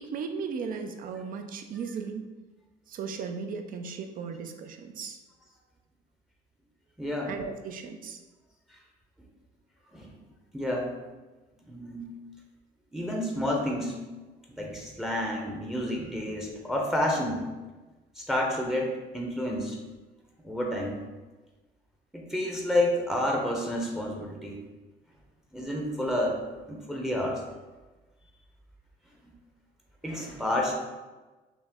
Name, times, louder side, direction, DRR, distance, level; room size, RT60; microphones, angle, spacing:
voice 1, 0.0-2.3 2.9-5.2 7.3-8.2, right 5 dB, 55° right, 6 dB, 0.5 m, -36 dB
voice 2, 7.0-7.3 8.7-8.8 9.9-10.1 10.5-10.9 11.7-12.1 12.9-14.0 14.5-17.4 18.2-19.8 20.4-21.0 22.1-24.6 25.5-26.4 26.7-27.4 29.2-29.3 30.0-30.7, left 1 dB, ahead, 0 dB, 0.7 m, -30 dB
5.9 x 2.1 x 3.6 m, 1.2 s
cardioid pair, 110°, 17 cm